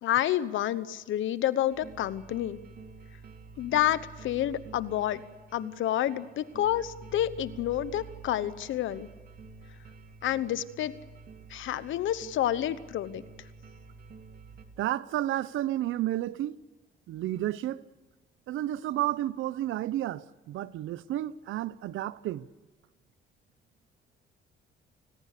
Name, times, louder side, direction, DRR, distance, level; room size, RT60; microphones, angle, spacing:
voice 1, 0.0-2.6 3.6-5.2 5.5-9.1 10.2-11.0 11.5-13.2, left 12 dB, 80° left, 1.0 m, -29 dB
sound 1, 1.7-14.7, right 4 dB, 50° right, 2.8 m, -49 dB
voice 2, 14.8-16.6 17.1-17.8 18.5-22.5, right 13 dB, 80° right, 0.8 m, -31 dB
29.0 x 20.5 x 6.7 m
cardioid pair, 90°, 20 cm